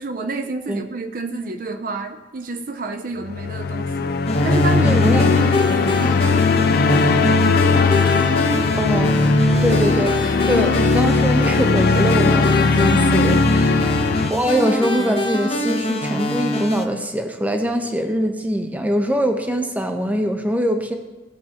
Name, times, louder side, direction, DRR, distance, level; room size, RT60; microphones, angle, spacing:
voice 1, 0.0-4.1 4.4-5.7 6.0-6.3 13.7-14.0, right 3 dB, 50° right, 7 dB, 0.5 m, -29 dB
sound 1, 3.2-14.3, left 4 dB, 55° left, 0.5 m, -18 dB
sound 2, 4.3-16.8, equal, 35° left, 0.9 m, -23 dB
voice 2, 4.8-5.3 8.8-21.0, equal, 10° right, 5 dB, 0.7 m, -23 dB
16.5 x 6.1 x 2.9 m, 1.1 s
head